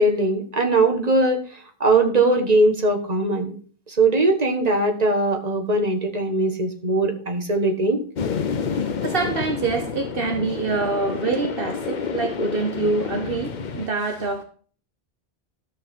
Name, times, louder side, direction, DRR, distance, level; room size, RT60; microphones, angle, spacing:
voice 1, 0.0-1.4 1.8-3.5 3.9-8.0, right 2 dB, 40° right, 1.5 m, -20 dB
sound 1, 8.2-13.9, left 6 dB, 50° left, 0.7 m, -29 dB
voice 2, 8.7-14.4, right 4 dB, 60° right, 1.2 m, -25 dB
12.5 x 6.6 x 3.6 m
omnidirectional pair, 1.1 m